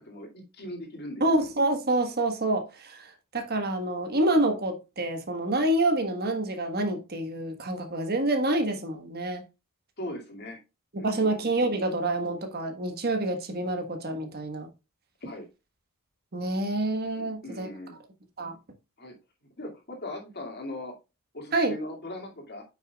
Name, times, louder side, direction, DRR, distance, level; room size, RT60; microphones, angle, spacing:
voice 1, 0.0-1.3 10.0-10.6 11.0-11.3 15.2-15.5 17.1-18.0 19.0-19.1 19.6-20.9 21.3-22.6, left 1 dB, 45° left, 2.4 m, -39 dB
voice 2, 1.2-9.4 10.9-14.7 16.3-17.7 18.4-18.6 21.5-21.8, right 2 dB, 45° right, 1.4 m, -27 dB
9.1 x 6.1 x 2.3 m
head